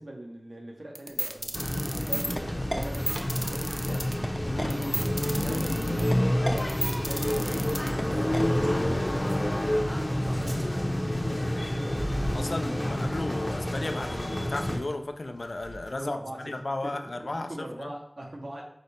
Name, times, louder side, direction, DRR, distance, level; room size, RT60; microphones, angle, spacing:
voice 1, 0.0-3.1 3.4-6.7 7.0-11.6 15.9-16.5 16.8-18.6, right 1 dB, 85° right, -1 dB, 0.8 m, -42 dB
sound 1, 0.9-8.4, right 1 dB, 15° right, 0.4 m, -32 dB
sound 2, 1.1-16.2, equal, 50° right, 0.7 m, -45 dB
sound 3, 1.5-14.8, left 1 dB, 40° left, 0.6 m, -28 dB
voice 2, 4.5-5.1 5.5-5.8 12.3-17.9, left 2 dB, 85° left, 6 dB, 0.3 m, -35 dB
5.0 x 2.1 x 4.1 m, 0.72 s
wide cardioid pair, 45°, 0 cm